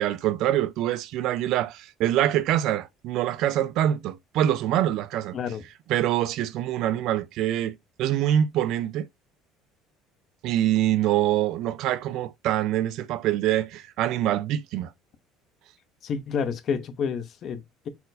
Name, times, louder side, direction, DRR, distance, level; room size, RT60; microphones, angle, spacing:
voice 1, 0.0-5.4 5.9-9.1 10.4-14.9, right 12 dB, 55° right, 0.4 m, -25 dB
voice 2, 5.3-5.6 16.0-17.9, left 6 dB, 35° left, 0.6 m, -29 dB
4.2 x 2.4 x 3.9 m
cardioid pair, 170°, 0 cm